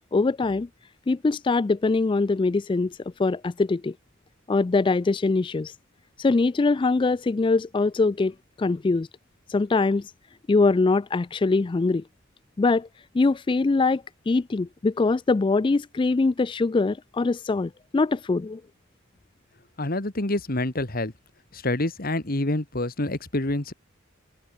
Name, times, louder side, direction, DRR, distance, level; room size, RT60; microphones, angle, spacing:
voice 1, 0.1-0.7 1.1-3.9 4.5-5.7 6.2-9.1 9.5-10.1 10.5-12.0 12.6-12.9 13.1-18.6, left 3 dB, 25° left, 0.3 m, -23 dB
voice 2, 19.8-21.1 21.5-23.7, left 1 dB, 45° left, 1.9 m, -27 dB
open air
head